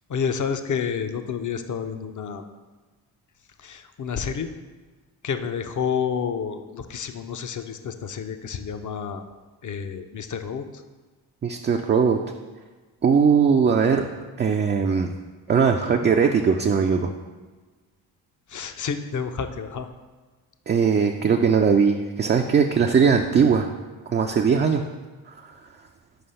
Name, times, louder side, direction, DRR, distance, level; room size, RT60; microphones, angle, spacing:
voice 1, 0.1-2.4 3.6-4.5 5.2-9.2 9.6-10.8 18.5-19.9, left 6 dB, 40° left, 8 dB, 0.6 m, -29 dB
voice 2, 11.4-12.2 13.0-14.1 14.4-15.1 15.5-17.1 20.7-23.7 24.1-24.8, right 6 dB, 25° right, 3 dB, 0.3 m, -20 dB
5.1 x 3.3 x 5.5 m, 1.3 s
hypercardioid pair, 40°, 49 cm